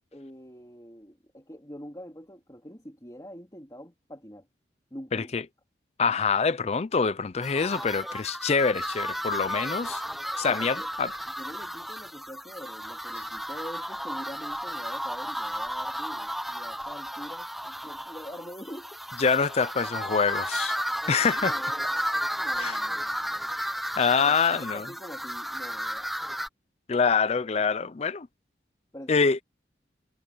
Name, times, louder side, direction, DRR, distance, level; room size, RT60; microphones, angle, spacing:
voice 1, 0.1-4.5 4.9-5.4 10.4-10.9 11.4-19.0 21.4-22.1 22.4-23.5 24.1-26.2 28.9-29.2, equal, 20° left, 3.1 m, -44 dB
voice 2, 5.1-5.4 6.0-10.0 10.4-11.1 19.2-20.8 21.1-21.5 22.6-22.8 24.0-24.9 26.9-28.3 29.1-29.4, left 5 dB, 35° left, 0.5 m, -25 dB
sound 1, 7.4-26.5, equal, ahead, 0.7 m, -33 dB
head